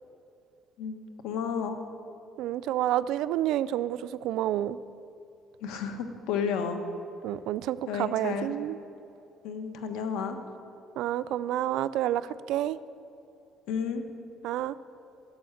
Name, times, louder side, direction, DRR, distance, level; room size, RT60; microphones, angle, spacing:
voice 1, 0.8-1.8 5.6-6.8 7.9-8.5 9.4-10.4 13.7-14.1, left 6 dB, 90° left, 7 dB, 1.2 m, -32 dB
voice 2, 2.4-4.8 7.2-8.8 11.0-12.8 14.4-14.7, right 12 dB, 80° right, 15 dB, 0.4 m, -29 dB
13.0 x 7.1 x 9.9 m, 2.8 s
cardioid pair, 125°, 0 cm